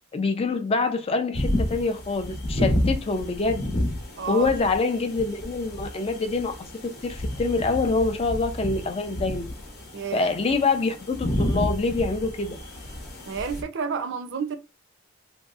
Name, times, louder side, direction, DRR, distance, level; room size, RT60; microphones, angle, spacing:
voice 1, 0.1-3.7 4.3-9.5 10.1-12.6, left 3 dB, 25° left, 0.4 m, -25 dB
sound 1, 1.3-13.6, left 1 dB, 50° left, 0.8 m, -30 dB
voice 2, 4.2-4.5 9.9-10.2 13.3-14.6, right 6 dB, 55° right, 0.5 m, -30 dB
3.0 x 2.6 x 2.3 m
head